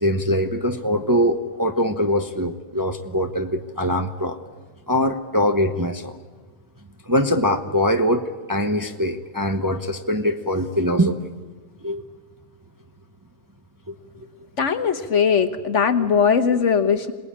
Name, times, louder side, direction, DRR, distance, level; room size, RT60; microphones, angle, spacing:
voice 1, 0.0-4.4 4.9-6.2 7.1-11.2 11.8-12.0 13.9-14.0, equal, 15° right, 5 dB, 0.9 m, -22 dB
voice 2, 14.6-17.1, left 6 dB, 55° left, 8 dB, 1.5 m, -19 dB
26.5 x 19.5 x 8.8 m, 1.4 s
omnidirectional pair, 1.5 m